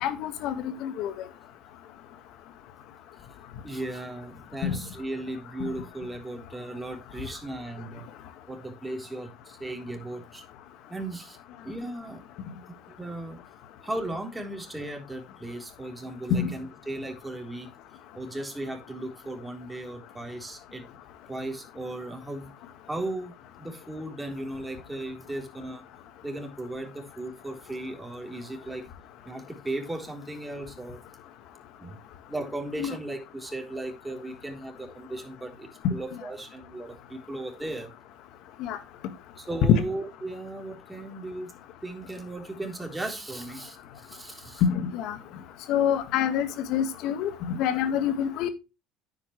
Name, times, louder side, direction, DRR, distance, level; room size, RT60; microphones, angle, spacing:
voice 1, 0.0-1.1 4.6-4.8 16.4-16.5 32.8-32.9 38.6-38.8 39.7-39.8 44.6-45.2 45.7-48.5, left 8 dB, 65° left, 11 dB, 1.8 m, -26 dB
voice 2, 3.6-8.1 8.5-10.4 10.9-11.4 11.6-12.2 13.0-13.4 13.8-17.7 18.1-20.9 21.3-22.5 22.9-25.9 26.2-28.9 29.2-31.0 31.8-32.0 32.3-37.9 39.4-41.5 41.8-44.6, right 1 dB, 10° right, 3 dB, 3.8 m, -36 dB
9.9 x 8.5 x 3.3 m, 0.26 s
hypercardioid pair, 70°, 0 cm